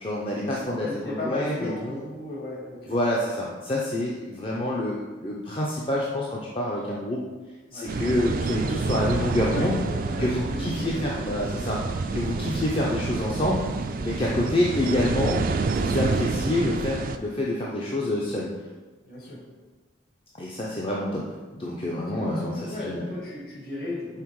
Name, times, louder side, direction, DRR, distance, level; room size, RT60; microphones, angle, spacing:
voice 1, 0.0-2.0 2.9-7.2 7.7-9.8 10.2-11.8 12.1-13.6 14.0-15.4 15.7-18.5 20.3-23.0, left 1 dB, 30° left, -4 dB, 0.6 m, -27 dB
voice 2, 0.8-3.0 7.7-8.1 9.4-11.8 19.0-19.5 22.0-24.2, left 1 dB, 55° left, -4 dB, 1.9 m, -36 dB
sound 1, 7.9-17.2, right 3 dB, 50° right, 0.3 m, -28 dB
5.8 x 3.9 x 4.7 m, 1.3 s
head